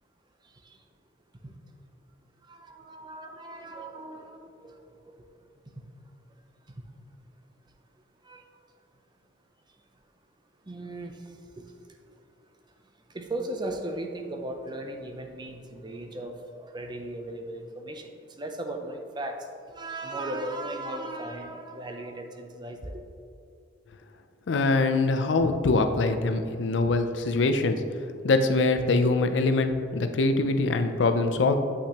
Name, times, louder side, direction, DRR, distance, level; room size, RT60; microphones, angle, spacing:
voice 1, 2.4-5.3 5.8-5.9 6.7-6.8 8.2-8.4 10.7-11.6 13.1-23.0, right 1 dB, 25° right, 4 dB, 0.6 m, -37 dB
voice 2, 24.5-27.8 28.2-31.6, left 3 dB, 70° left, 8 dB, 0.5 m, -23 dB
8.2 x 5.7 x 3.0 m, 2.4 s
head